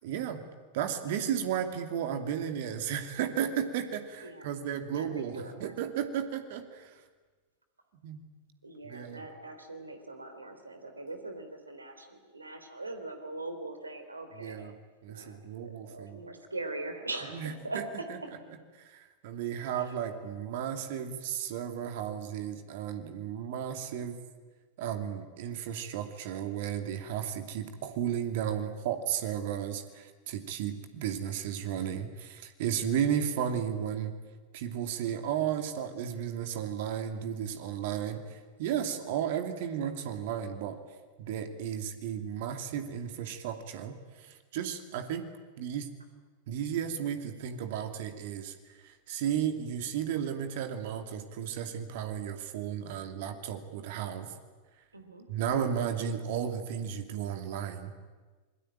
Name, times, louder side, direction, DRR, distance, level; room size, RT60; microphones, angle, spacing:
voice 1, 0.0-0.4 0.7-7.0 8.0-8.2 8.8-9.3 14.4-14.7 15.0-16.2 17.3-17.8 18.1-18.2 18.8-24.2 24.8-34.2 34.5-40.8 41.2-45.3 45.6-45.9 46.5-54.3 55.3-57.9, right 9 dB, 50° right, 7 dB, 2.6 m, -34 dB
voice 2, 4.9-5.7 8.6-14.6 15.1-18.1 19.8-19.9 38.7-39.2 54.9-55.3, right 2 dB, 80° right, 7 dB, 3.4 m, -41 dB
27.0 x 22.0 x 9.0 m, 1.4 s
figure-of-eight pair, 90°, 0 cm